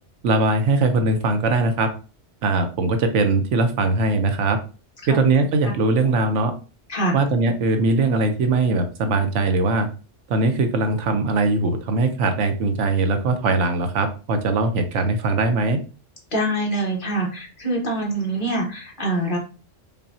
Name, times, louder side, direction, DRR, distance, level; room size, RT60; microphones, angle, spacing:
voice 1, 0.2-1.9 2.4-4.6 5.1-6.5 7.1-9.9 10.3-15.8, right 3 dB, 75° right, 7 dB, 0.9 m, -20 dB
voice 2, 16.3-19.4, right 1 dB, 45° left, -1 dB, 1.2 m, -24 dB
5.3 x 2.2 x 2.6 m, 0.35 s
omnidirectional pair, 1.3 m